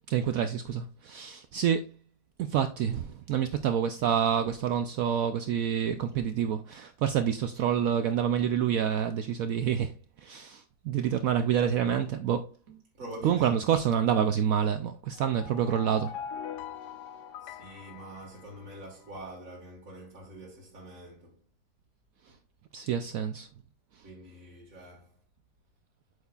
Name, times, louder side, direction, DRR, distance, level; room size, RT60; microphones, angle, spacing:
voice 1, 0.1-1.9 2.4-12.8 13.2-16.1 22.7-23.5 24.0-24.1, right 8 dB, 70° right, 0.8 m, -28 dB
voice 2, 13.0-13.6 17.4-21.4 24.0-25.2, right 1 dB, 55° right, 1.9 m, -45 dB
sound 1, 15.1-19.1, left 7 dB, 80° left, 1.2 m, -42 dB
8.2 x 6.4 x 2.3 m
omnidirectional pair, 1.8 m